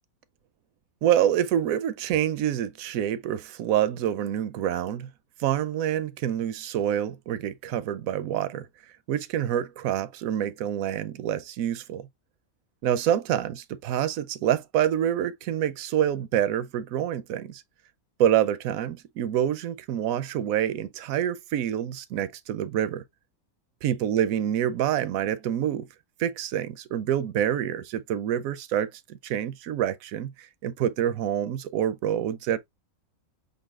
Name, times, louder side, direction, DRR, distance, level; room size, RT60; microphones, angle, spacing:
voice 1, 1.0-5.1 5.4-8.7 9.1-12.1 12.8-17.6 18.2-23.0 23.8-25.8 26.2-32.6, right 10 dB, 80° right, 1.0 m, -27 dB
5.3 x 4.0 x 2.3 m
omnidirectional pair, 1.5 m